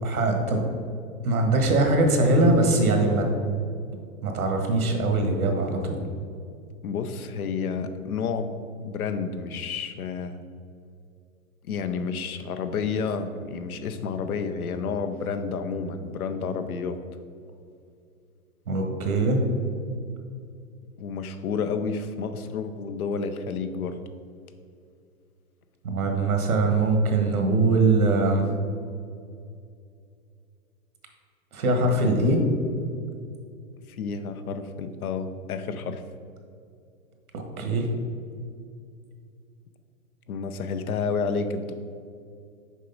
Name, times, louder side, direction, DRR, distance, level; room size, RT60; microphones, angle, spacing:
voice 1, 0.0-0.6 1.2-3.3 4.2-6.0 18.7-19.4 25.8-28.5 31.5-32.4 37.3-37.9, right 2 dB, 85° right, 3 dB, 1.4 m, -22 dB
voice 2, 6.8-8.5 8.8-10.4 11.6-17.0 21.0-24.0 33.9-36.0 40.3-41.7, left 5 dB, 85° left, 10 dB, 0.7 m, -30 dB
6.4 x 4.9 x 4.0 m, 2.4 s
hypercardioid pair, 140°, 42 cm